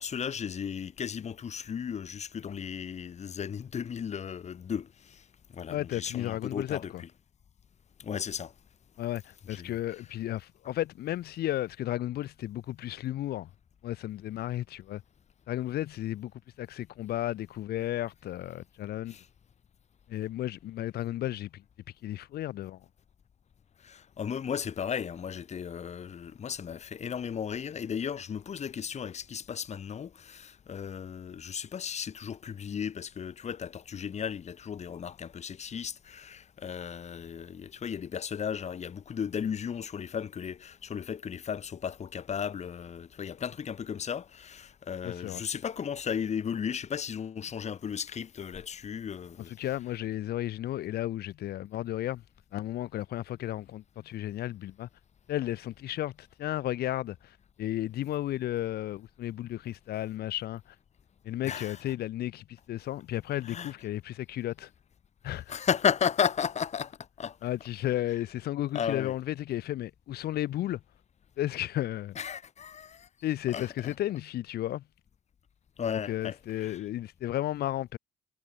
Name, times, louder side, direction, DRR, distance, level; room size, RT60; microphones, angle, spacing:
voice 1, 0.0-5.2 5.5-6.9 8.0-8.5 9.5-9.7 19.1-19.3 23.8-49.5 61.4-61.8 63.4-63.7 65.5-67.4 68.7-69.1 72.2-73.1 73.5-73.9 75.8-76.8, left 7 dB, 40° left, 5.4 m, -35 dB
voice 2, 5.7-7.0 9.0-13.5 13.8-15.0 15.5-16.3 16.6-19.2 20.1-21.6 22.0-22.9 45.0-45.4 49.5-52.2 52.5-54.9 55.3-60.7 61.2-64.7 65.2-65.6 67.4-70.8 71.4-72.2 73.2-74.8 76.1-78.0, left 13 dB, 70° left, 4.8 m, -33 dB
cardioid pair, 110°, 17 cm